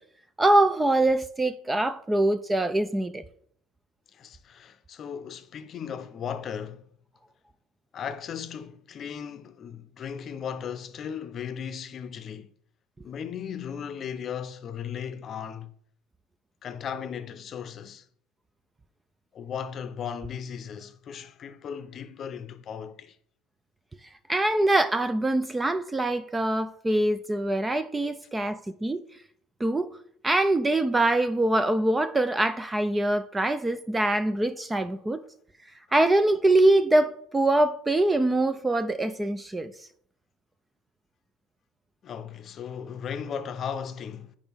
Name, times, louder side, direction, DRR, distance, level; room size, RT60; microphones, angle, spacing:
voice 1, 0.4-3.2 24.3-29.0 29.6-29.9 30.2-35.2 35.9-39.7, right 1 dB, 10° right, 0.4 m, -24 dB
voice 2, 4.1-6.9 7.9-12.5 13.0-15.7 16.6-18.1 19.3-23.2 42.0-44.4, left 7 dB, 40° left, 0.7 m, -36 dB
8.9 x 5.2 x 3.5 m
supercardioid pair, 120°, 0 cm